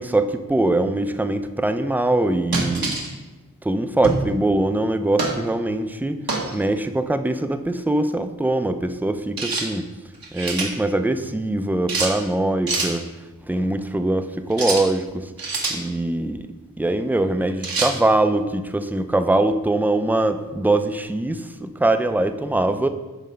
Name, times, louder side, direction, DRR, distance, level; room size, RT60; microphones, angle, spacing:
voice 1, 0.0-3.0 3.6-6.2 6.5-9.9 10.3-13.1 13.4-16.5 16.8-22.9, right 2 dB, 5° right, 9 dB, 0.4 m, -22 dB
sound 1, 2.5-3.1 4.0-4.3 5.2-5.4 6.3-6.5 9.4-9.7 10.1-10.7 11.9-12.2 12.7-12.9 14.5-14.9 15.4-15.8 17.6-17.9, right 3 dB, 90° right, 1.2 m, -25 dB
9.1 x 3.1 x 5.6 m, 1.2 s
wide cardioid pair, 70°, 34 cm